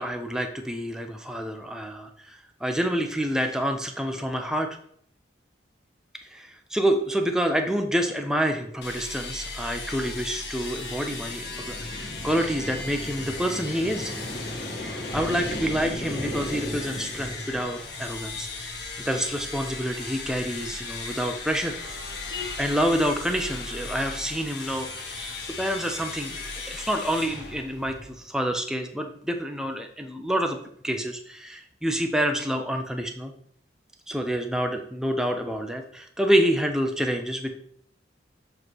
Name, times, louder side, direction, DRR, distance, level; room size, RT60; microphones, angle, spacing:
voice 1, 0.0-4.7 6.3-14.1 14.7-18.8 19.1-21.8 22.6-26.4 26.7-30.6 30.8-33.3 34.1-37.6, equal, 5° right, 4 dB, 0.6 m, -28 dB
sound 1, 8.8-28.3, left 3 dB, 65° left, 1.5 m, -37 dB
sound 2, 11.0-17.7, equal, 50° left, 1.8 m, -37 dB
7.4 x 3.2 x 6.1 m, 0.65 s
head